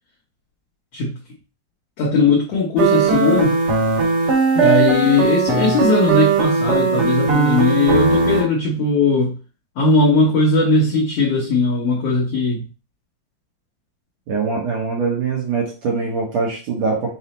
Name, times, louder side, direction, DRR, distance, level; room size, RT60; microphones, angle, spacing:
voice 1, 2.0-3.6 4.5-9.4 9.8-12.6, left 3 dB, 80° left, -3 dB, 1.4 m, -18 dB
sound 1, 2.8-8.4, right 5 dB, 55° right, 1.8 m, -18 dB
voice 2, 14.3-17.2, right 4 dB, 70° right, -2 dB, 1.8 m, -23 dB
5.9 x 2.0 x 4.0 m, 0.36 s
omnidirectional pair, 3.9 m